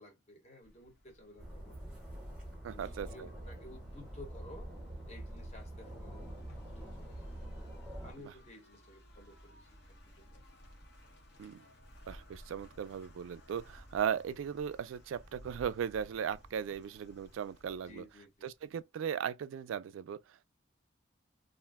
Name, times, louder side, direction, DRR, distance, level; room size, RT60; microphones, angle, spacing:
voice 1, 0.0-1.9 2.7-4.7 5.1-7.3 8.0-10.4 16.7-16.8 17.9-18.5, left 1 dB, 35° left, 1.0 m, -55 dB
sound 1, 0.6-18.8, equal, 60° left, 0.8 m, -58 dB
sound 2, 1.4-8.1, right 1 dB, 5° right, 0.9 m, -45 dB
voice 2, 2.6-3.3 8.2-8.3 11.4-11.6 12.1-18.0 18.4-20.5, right 8 dB, 85° right, 0.3 m, -37 dB
2.5 x 2.1 x 3.4 m
head